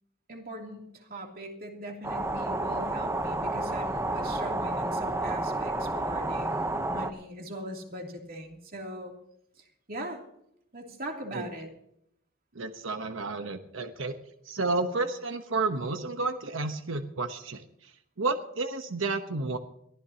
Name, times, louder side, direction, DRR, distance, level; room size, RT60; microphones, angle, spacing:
voice 1, 0.3-9.1 9.9-10.2 10.7-11.7, right 1 dB, 45° right, 1 dB, 3.0 m, -40 dB
sound 1, 2.0-7.1, right 2 dB, 15° right, 0.9 m, -30 dB
voice 2, 12.5-14.2 14.4-17.9 18.2-19.6, right 3 dB, 70° right, 7 dB, 1.1 m, -31 dB
22.5 x 15.0 x 2.9 m, 0.74 s
head